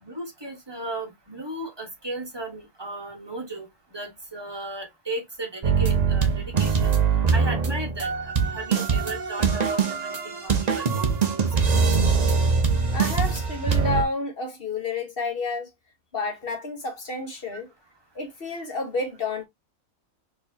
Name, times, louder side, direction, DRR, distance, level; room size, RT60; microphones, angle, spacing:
voice 1, 0.0-6.9 7.3-11.6, right 2 dB, 20° right, 1.3 m, -36 dB
sound 1, 5.6-14.0, right 5 dB, 40° right, 0.7 m, -23 dB
voice 2, 12.9-15.7 16.1-17.7 18.1-19.4, left 3 dB, 45° left, 1.4 m, -30 dB
4.2 x 3.5 x 2.8 m
omnidirectional pair, 1.4 m